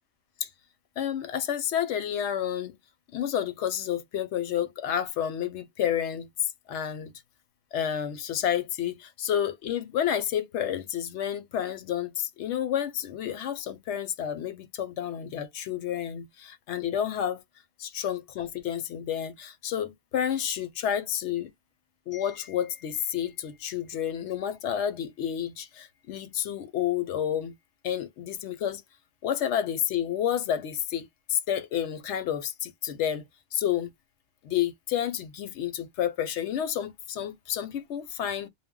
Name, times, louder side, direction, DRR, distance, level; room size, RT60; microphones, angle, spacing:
voice 1, 1.0-2.8 3.1-7.1 7.7-17.4 17.8-21.5 22.1-27.6 27.8-28.8 29.2-33.3 33.5-33.9 34.4-38.5, left 10 dB, 70° left, 0.8 m, -30 dB
2.1 x 2.1 x 3.5 m
omnidirectional pair, 1.3 m